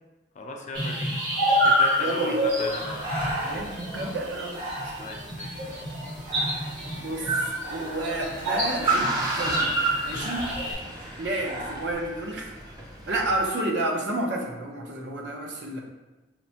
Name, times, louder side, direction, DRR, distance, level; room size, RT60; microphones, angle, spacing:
voice 1, 0.4-1.2 1.6-3.0 5.0-5.9 11.0-11.2, left 2 dB, 40° left, 2 dB, 0.4 m, -36 dB
sound 1, 0.7-10.7, equal, 85° right, 1.4 m, -28 dB
voice 2, 2.0-2.4 3.4-5.1 7.0-9.7 10.0-10.5 11.2-12.5 13.1-15.8, right 2 dB, 70° right, 0 dB, 0.6 m, -30 dB
Breathing, 2.4-11.9, equal, 55° right, 1.3 m, -39 dB
Car, 6.1-13.4, right 3 dB, 20° right, 0.5 m, -32 dB
5.7 x 2.1 x 2.7 m, 1.1 s
head